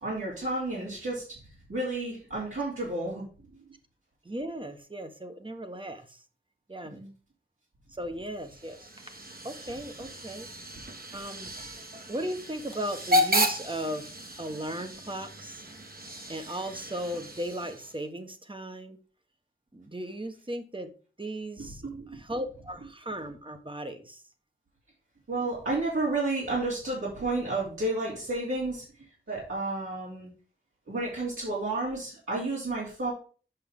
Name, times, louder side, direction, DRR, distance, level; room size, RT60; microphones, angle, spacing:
voice 1, 0.0-1.4 1.7-3.2 6.9-7.1 21.6-22.2 25.3-28.8 29.3-30.3 30.9-33.1, right 2 dB, 80° right, -7 dB, 2.9 m, -31 dB
voice 2, 4.2-6.2 6.7-7.0 7.9-8.9 9.4-10.5 11.1-11.5 12.1-14.1 14.4-15.6 16.3-19.0 19.7-20.9 21.2-21.8 22.1-24.2, right 1 dB, 25° right, 7 dB, 1.1 m, -36 dB
Hiss / Train / Alarm, 8.4-18.0, equal, 45° right, 1.3 m, -33 dB
7.9 x 5.8 x 3.6 m, 0.37 s
wide cardioid pair, 50°, 21 cm